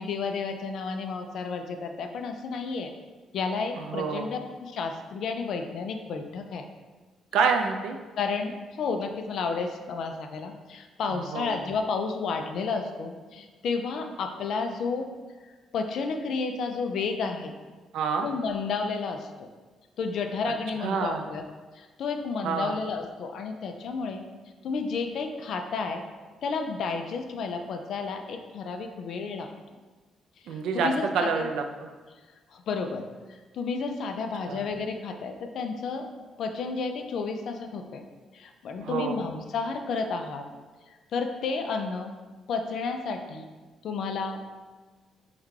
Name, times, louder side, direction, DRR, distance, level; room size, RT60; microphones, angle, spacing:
voice 1, 0.0-2.9 3.3-6.6 8.2-15.1 15.7-17.5 18.2-19.5 20.0-21.4 21.8-24.3 24.6-26.0 26.4-29.5 30.5-31.5 32.5-33.1 33.5-36.1 36.4-38.0 38.3-40.4 41.1-42.1 42.5-43.5 43.8-44.4, left 4 dB, 70° left, 5 dB, 0.3 m, -31 dB
voice 2, 3.8-4.3 7.3-8.0 11.1-11.6 17.9-18.3 20.5-20.6 20.8-21.3 22.4-22.8 30.5-31.9 34.5-34.6 38.8-39.2, right 5 dB, 80° right, 4 dB, 0.3 m, -28 dB
3.6 x 2.2 x 3.1 m, 1.4 s
cardioid pair, 90°, 0 cm